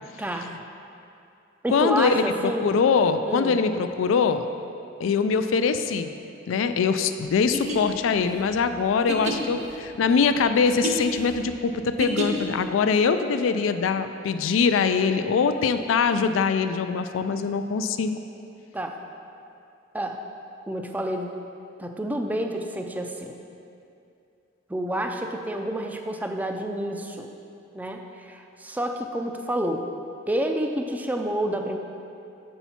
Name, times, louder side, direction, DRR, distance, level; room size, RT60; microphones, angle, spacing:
voice 1, 0.2-0.5 1.6-2.7 3.3-3.6 18.7-19.0 19.9-20.2 20.7-21.3 21.8-23.4 24.7-27.3 27.7-29.8 30.3-31.8, right 1 dB, 10° right, 4 dB, 0.4 m, -29 dB
voice 2, 1.7-2.2 2.6-4.5 5.0-6.1 6.5-18.2, left 5 dB, 85° left, 10 dB, 0.3 m, -23 dB
sound 1, 7.4-12.6, equal, 35° right, 0.7 m, -31 dB
7.0 x 5.5 x 4.3 m, 2.6 s
head